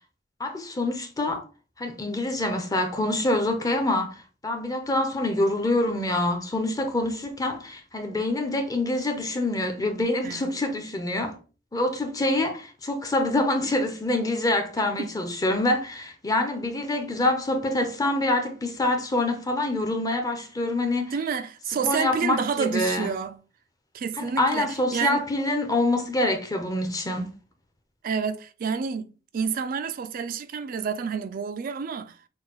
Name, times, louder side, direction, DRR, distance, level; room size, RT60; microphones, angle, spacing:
voice 1, 0.4-1.4 1.8-11.3 11.7-21.1 21.8-23.1 24.2-27.3, left 2 dB, 20° left, 0.7 m, -26 dB
voice 2, 21.1-23.4 23.9-25.2 28.0-32.2, right 6 dB, 50° right, 0.3 m, -29 dB
6.2 x 2.3 x 3.0 m
head